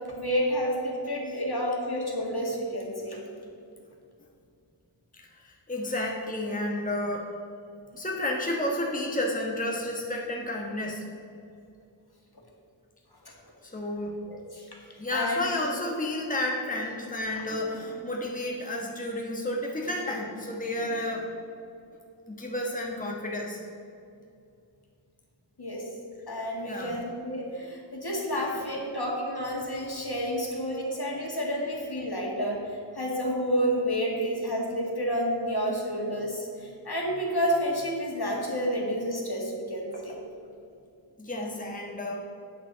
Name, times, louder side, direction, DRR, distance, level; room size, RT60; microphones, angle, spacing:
voice 1, 0.2-3.2 14.3-14.6 15.1-16.1 25.6-25.9 26.3-40.2, equal, 55° left, -2 dB, 2.0 m, -30 dB
voice 2, 5.1-7.3 7.9-11.0 13.6-14.2 15.0-21.2 22.3-23.6 26.6-26.9 41.2-42.1, left 1 dB, 20° left, -1 dB, 1.2 m, -31 dB
8.8 x 6.8 x 5.6 m, 2.5 s
wide cardioid pair, 45°, 45 cm